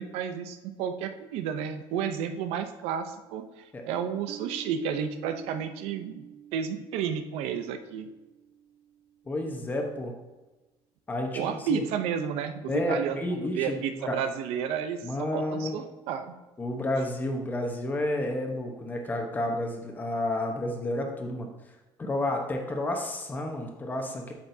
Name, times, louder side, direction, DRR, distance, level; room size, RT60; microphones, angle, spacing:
voice 1, 0.0-6.3 6.5-8.1 11.3-16.3, right 8 dB, 85° right, 8 dB, 0.6 m, -32 dB
Piano, 4.3-9.7, right 9 dB, 45° right, 0.5 m, -48 dB
voice 2, 9.3-10.1 11.1-11.8 12.7-14.2 15.0-15.8 16.6-21.5 22.0-24.3, left 1 dB, 15° left, 2 dB, 1.0 m, -31 dB
8.7 x 6.1 x 2.7 m, 1.1 s
cardioid pair, 155°, 10 cm